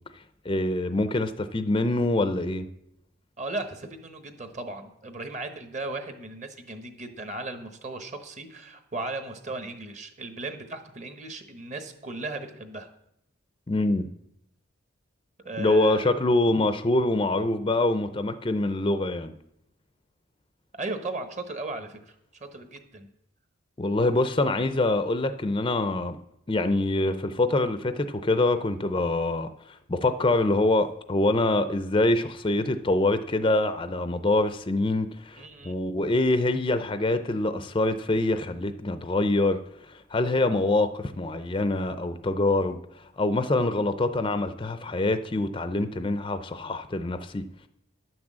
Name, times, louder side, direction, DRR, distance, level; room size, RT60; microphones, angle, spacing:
voice 1, 0.5-2.7 13.7-14.1 15.6-19.3 23.8-26.2 26.5-29.5 29.9-39.6 39.9-42.8 43.2-47.4, left 2 dB, 25° left, 10 dB, 0.5 m, -25 dB
voice 2, 3.4-12.9 15.4-16.1 20.7-23.1 35.4-35.7 37.5-37.6, right 2 dB, 35° right, 7 dB, 1.1 m, -36 dB
11.0 x 6.1 x 7.4 m, 0.79 s
head